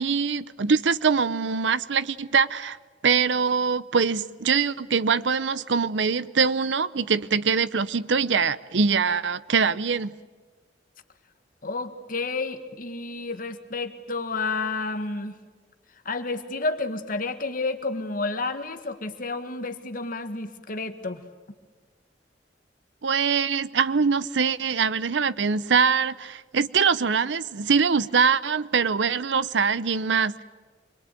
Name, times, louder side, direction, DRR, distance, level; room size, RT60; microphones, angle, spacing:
voice 1, 0.0-2.8 3.0-10.2 23.0-30.4, right 5 dB, 85° right, 0.7 m, -23 dB
voice 2, 11.6-15.3 16.0-21.2, left 3 dB, 50° left, 1.6 m, -30 dB
26.0 x 22.5 x 9.1 m
head